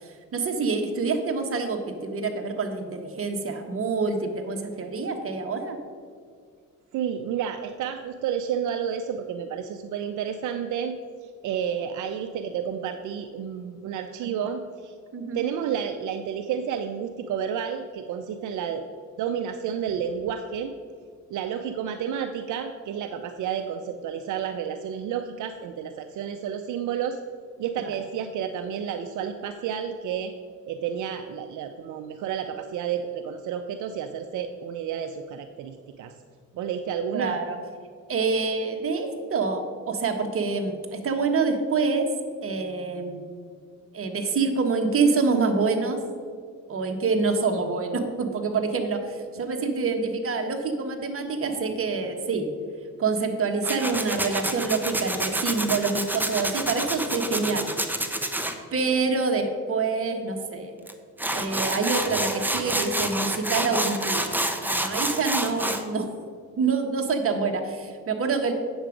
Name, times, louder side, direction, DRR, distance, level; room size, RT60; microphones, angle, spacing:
voice 1, 0.0-5.8 15.1-15.4 27.8-27.9 37.1-37.6 38.1-42.1 42.4-43.3 43.9-46.0 46.7-52.5 53.0-57.7 58.7-60.8 61.3-64.4 64.7-66.1 66.6-68.5, right 4 dB, 45° right, 4 dB, 1.4 m, -26 dB
voice 2, 6.9-14.9 15.3-18.8 19.2-20.7 21.3-27.2 27.6-30.3 30.7-36.1 36.5-37.4, right 8 dB, 80° right, 7 dB, 0.6 m, -31 dB
Tools, 53.6-58.5 60.9-61.0 61.2-65.8, right 1 dB, 5° right, 0.9 m, -28 dB
8.8 x 7.0 x 5.1 m, 2.1 s
cardioid pair, 90°, 30 cm